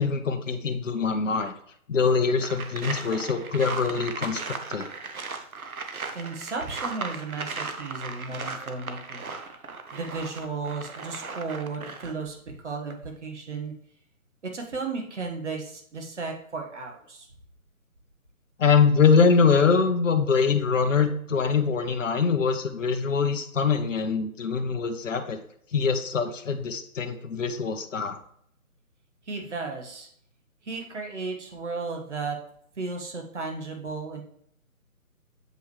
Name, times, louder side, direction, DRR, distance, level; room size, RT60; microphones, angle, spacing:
voice 1, 0.0-1.5 1.9-4.9 18.6-25.4 25.7-28.1, left 5 dB, 60° left, 6 dB, 0.9 m, -23 dB
sound 1, 2.4-12.3 12.7-12.9, right 4 dB, 75° right, 1.0 m, -37 dB
voice 2, 6.1-9.3 9.9-13.7 14.4-17.3 29.3-30.1 30.6-32.4 32.8-34.2, right 4 dB, 55° right, 2 dB, 1.6 m, -34 dB
7.7 x 5.4 x 3.2 m, 0.67 s
figure-of-eight pair, 155°, 43 cm